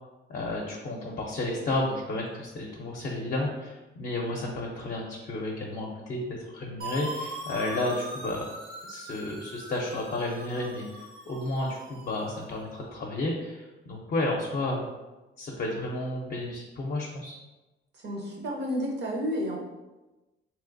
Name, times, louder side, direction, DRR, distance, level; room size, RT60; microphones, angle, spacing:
voice 1, 0.3-8.5 8.9-14.8 15.4-17.4, left 2 dB, 45° left, -2 dB, 0.6 m, -32 dB
sound 1, 6.8-12.6, right 1 dB, 90° right, 0.8 m, -41 dB
voice 2, 18.0-19.6, equal, 60° right, -1 dB, 0.9 m, -31 dB
3.1 x 2.9 x 2.5 m, 1.1 s
cardioid pair, 90°, 20 cm